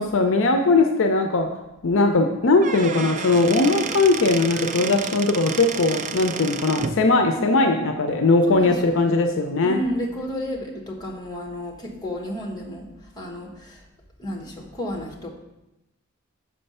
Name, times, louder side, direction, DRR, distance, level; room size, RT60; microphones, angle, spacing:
voice 1, 0.0-1.5 1.8-9.8, left 3 dB, 65° left, 5 dB, 0.5 m, -19 dB
Squeak / Wood, 2.4-7.0, right 6 dB, 35° right, 0.3 m, -31 dB
voice 2, 8.4-9.1 9.6-13.8 14.2-15.3, equal, 20° left, 1 dB, 1.1 m, -32 dB
6.4 x 4.4 x 5.4 m, 0.94 s
head